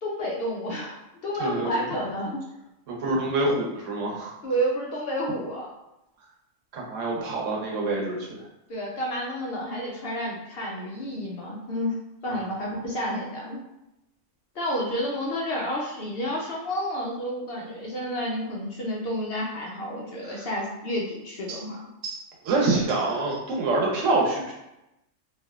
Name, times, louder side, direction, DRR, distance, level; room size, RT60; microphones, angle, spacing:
voice 1, 0.0-2.5 4.4-5.7 8.7-12.0 12.2-13.6 14.5-21.9, equal, 60° left, -2 dB, 0.7 m, -30 dB
voice 2, 1.4-1.8 2.9-4.3 6.7-8.3 20.3-20.4 21.5-21.6 22.0-22.2 22.4-24.5, right 2 dB, 80° right, -1 dB, 1.1 m, -26 dB
3.3 x 2.5 x 2.3 m, 0.90 s
omnidirectional pair, 1.3 m